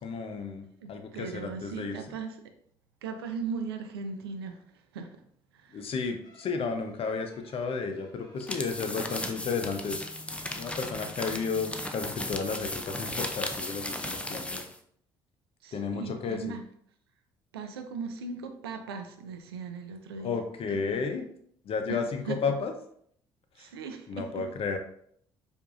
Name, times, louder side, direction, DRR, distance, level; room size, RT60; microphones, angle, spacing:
voice 1, 0.0-2.0 5.7-10.0 10.5-14.6 15.7-16.4 20.2-21.3 21.6-22.7 23.6-23.7 24.1-24.8, left 5 dB, 50° left, 6 dB, 0.7 m, -33 dB
voice 2, 0.8-2.4 3.0-5.2 5.5-5.9 15.6-16.6 17.5-20.4 20.7-20.8 21.9-22.4 23.6-24.4, right 5 dB, 90° right, 7 dB, 0.4 m, -38 dB
sound 1, 6.2-12.3, left 2 dB, 35° left, 1.3 m, -51 dB
sound 2, 8.4-14.8, left 1 dB, 10° left, 0.5 m, -36 dB
4.6 x 2.6 x 2.5 m, 0.67 s
hypercardioid pair, 55°, 12 cm